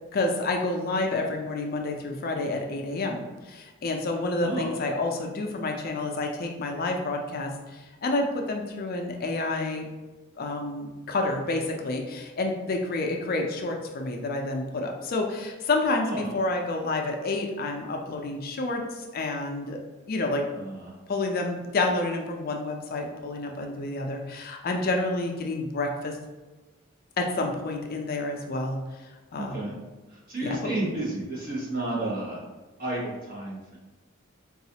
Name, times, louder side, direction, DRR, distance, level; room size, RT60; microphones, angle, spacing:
voice 1, 0.1-9.9 10.4-19.8 20.1-20.4 21.1-26.1 27.2-28.8 29.3-29.6 30.4-30.6, left 2 dB, 45° left, 2 dB, 0.4 m, -29 dB
voice 2, 16.0-16.3 20.5-20.9 29.3-29.7 30.1-32.4 32.8-33.8, right 2 dB, 45° right, -5 dB, 1.1 m, -32 dB
4.0 x 2.4 x 2.8 m, 1.2 s
head